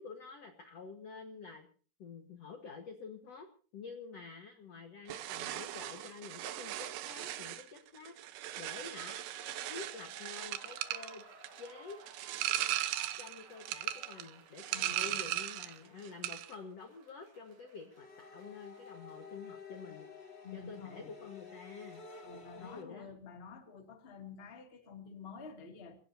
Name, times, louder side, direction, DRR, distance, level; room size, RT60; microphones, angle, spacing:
voice 1, 0.0-1.7 2.0-3.5 3.7-9.2 9.7-11.2 11.6-12.0 13.2-20.1 20.5-22.0 22.6-23.2, left 5 dB, 60° left, 1.7 m, -49 dB
sound 1, 5.1-15.8 16.1-16.6, right 13 dB, 80° right, 3.3 m, -38 dB
sound 2, 8.7-19.5 19.8-19.9, right 3 dB, 50° right, 4.9 m, -58 dB
voice 2, 14.7-15.3 20.4-21.2 22.2-25.9, left 5 dB, 25° left, 1.4 m, -49 dB
sound 3, 17.9-22.8, left 4 dB, 80° left, 0.5 m, -51 dB
29.0 x 16.0 x 2.8 m
omnidirectional pair, 5.1 m